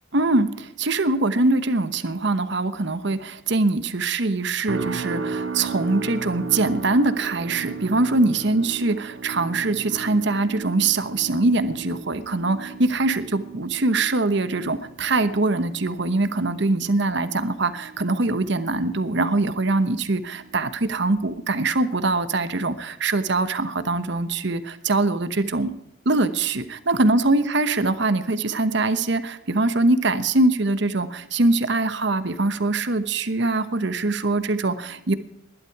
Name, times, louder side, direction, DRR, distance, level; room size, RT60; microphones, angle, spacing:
voice 1, 0.1-25.7 26.0-35.1, right 2 dB, 60° right, 12 dB, 1.0 m, -23 dB
sound 1, 4.7-19.9 20.2-20.6 21.1-21.3, right 4 dB, 75° right, 1.9 m, -36 dB
19.5 x 11.5 x 4.7 m, 0.82 s
head